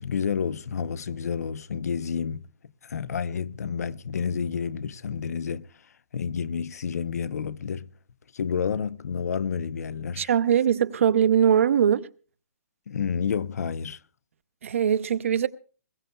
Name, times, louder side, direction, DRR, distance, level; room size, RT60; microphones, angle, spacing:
voice 1, 0.0-2.5 2.8-5.7 6.1-7.9 8.3-10.3 12.9-14.0, left 6 dB, 75° left, 0.6 m, -30 dB
voice 2, 10.2-12.1 14.6-15.5, right 8 dB, 55° right, 0.6 m, -21 dB
21.0 x 16.5 x 2.2 m
hypercardioid pair, 175°, 8 cm